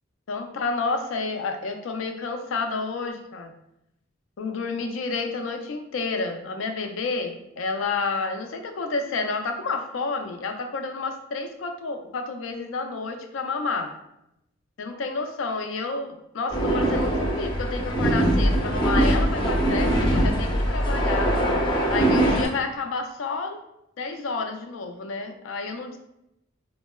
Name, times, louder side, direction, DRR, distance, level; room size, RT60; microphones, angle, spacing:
voice 1, 0.3-3.5 4.4-13.9 14.8-21.3 21.9-23.6 24.0-26.0, left 4 dB, 75° left, 6 dB, 0.4 m, -30 dB
sound 1, 16.5-22.5, right 1 dB, 25° left, 0.5 m, -22 dB
4.3 x 2.0 x 2.2 m, 0.83 s
head